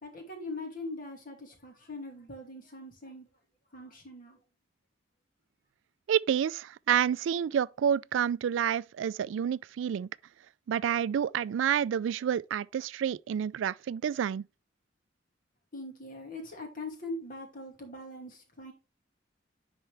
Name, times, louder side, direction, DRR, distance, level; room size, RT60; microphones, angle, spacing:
voice 1, 0.0-3.3 3.7-4.4 15.7-18.7, left 2 dB, 50° left, 2.5 m, -42 dB
voice 2, 6.1-10.1 10.7-14.4, right 8 dB, 85° right, 0.3 m, -29 dB
10.0 x 4.4 x 3.4 m
head